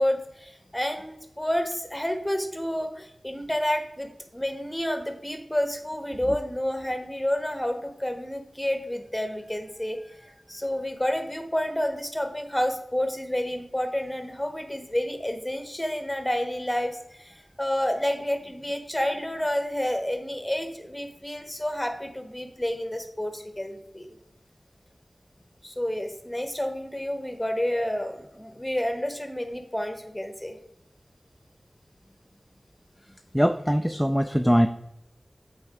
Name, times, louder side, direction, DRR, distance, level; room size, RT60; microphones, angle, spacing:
voice 1, 0.0-24.1 25.6-30.6, left 1 dB, 10° left, 7 dB, 1.1 m, -29 dB
voice 2, 33.3-34.7, equal, 5° right, 8 dB, 0.4 m, -21 dB
7.8 x 4.3 x 4.8 m, 0.79 s
wide cardioid pair, 60°, 0 cm